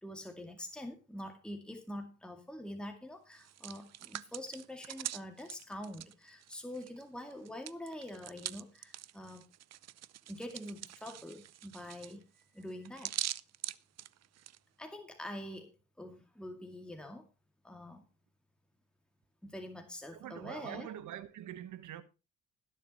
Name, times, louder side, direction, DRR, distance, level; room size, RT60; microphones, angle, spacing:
voice 1, 0.0-9.4 10.3-12.2 12.5-13.2 14.8-17.3 17.6-18.1 19.4-20.9, left 1 dB, 5° left, 2.2 m, -45 dB
Hands, 3.3-7.0 7.3-14.6, right 12 dB, 60° right, 0.6 m, -43 dB
voice 2, 20.1-22.0, right 11 dB, 75° right, 1.3 m, -44 dB
20.5 x 7.3 x 3.0 m
cardioid pair, 90°, 30 cm